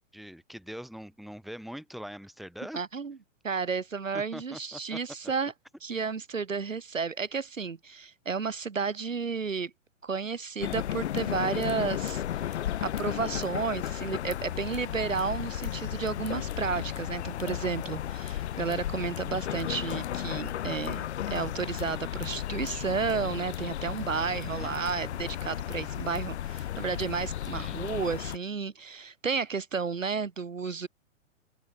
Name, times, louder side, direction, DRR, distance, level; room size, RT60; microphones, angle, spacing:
voice 1, 0.1-2.8 4.1-5.0 24.2-24.7 27.5-27.8, equal, ahead, 4.1 m, -43 dB
voice 2, 2.7-3.2 3.4-5.5 5.8-9.7 10.0-21.0 21.3-30.9, right 5 dB, 80° right, 2.8 m, -32 dB
sound 1, 10.6-28.4, left 11 dB, 60° left, 1.3 m, -34 dB
figure-of-eight pair, 110°, 38 cm